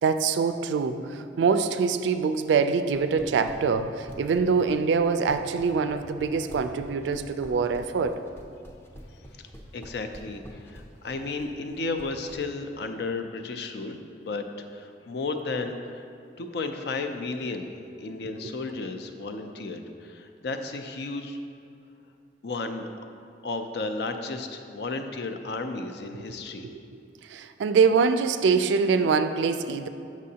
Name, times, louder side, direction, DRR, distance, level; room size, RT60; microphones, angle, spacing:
voice 1, 0.0-8.2 26.6-26.8 27.3-29.9, right 5 dB, 80° right, 10 dB, 0.3 m, -24 dB
sound 1, 2.8-12.4, equal, 15° left, 0.6 m, -45 dB
voice 2, 9.7-14.5 14.7-16.0 16.4-17.7 18.0-21.4 22.4-22.9 23.4-26.7, left 3 dB, 65° left, 7 dB, 0.4 m, -33 dB
7.4 x 6.2 x 2.8 m, 2.5 s
head